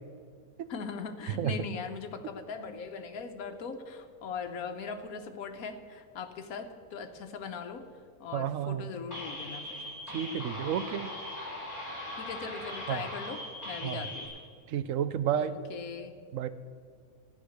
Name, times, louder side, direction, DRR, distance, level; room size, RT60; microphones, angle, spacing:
voice 1, 0.7-7.8 8.2-9.9 12.1-14.3 15.4-16.2, left 5 dB, 75° left, 6 dB, 1.4 m, -40 dB
voice 2, 8.3-8.9 10.1-11.1 12.9-13.0 13.8-14.0 14.7-15.6 16.3-16.5, right 9 dB, 65° right, 13 dB, 1.0 m, -31 dB
sound 1, 9.1-14.3, left 1 dB, 10° left, 4.7 m, -40 dB
14.0 x 10.5 x 6.5 m, 2.1 s
omnidirectional pair, 1.6 m